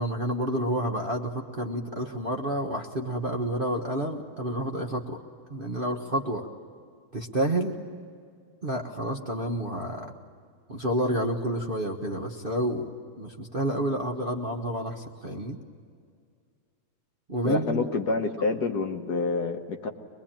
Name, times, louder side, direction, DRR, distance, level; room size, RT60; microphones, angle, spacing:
voice 1, 0.0-5.2 5.5-6.5 7.1-7.8 8.6-10.1 10.7-12.9 13.2-15.6 17.3-17.9, right 1 dB, 30° right, 1 dB, 1.3 m, -29 dB
voice 2, 17.4-19.9, left 3 dB, 55° left, 4 dB, 1.7 m, -27 dB
24.0 x 21.5 x 8.9 m, 2.2 s
omnidirectional pair, 2.3 m